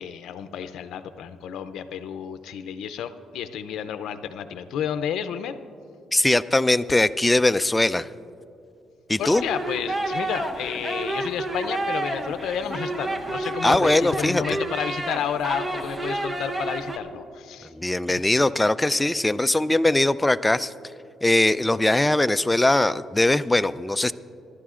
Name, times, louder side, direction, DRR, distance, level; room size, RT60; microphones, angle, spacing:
voice 1, 0.0-5.5 9.2-17.7, left 8 dB, 80° left, 10 dB, 0.5 m, -31 dB
voice 2, 6.1-8.1 9.1-9.4 13.6-14.4 17.7-20.7 21.2-24.1, left 2 dB, 10° left, 13 dB, 0.3 m, -21 dB
sound 1, 9.3-17.0, right 1 dB, 20° right, 0.9 m, -30 dB
25.0 x 11.5 x 2.5 m, 2.5 s
cardioid pair, 90°, 0 cm